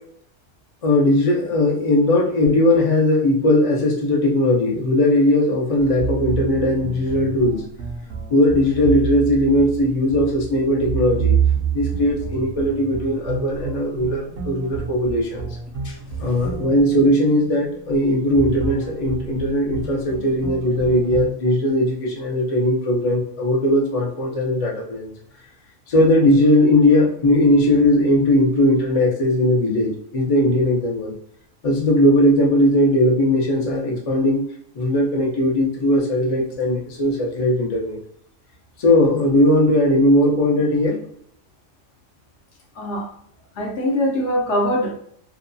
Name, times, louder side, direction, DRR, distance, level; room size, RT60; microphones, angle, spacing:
voice 1, 0.8-7.6 8.3-11.4 11.7-15.5 16.2-25.1 25.9-31.1 31.6-34.4 34.7-38.0 38.8-41.0, left 1 dB, 45° left, -2 dB, 0.4 m, -18 dB
sound 1, 5.8-21.3, right 6 dB, 70° right, 0.8 m, -28 dB
voice 2, 42.8-43.1 43.6-44.9, left 1 dB, 65° left, 0 dB, 1.0 m, -22 dB
2.7 x 2.2 x 2.5 m, 0.66 s
omnidirectional pair, 1.3 m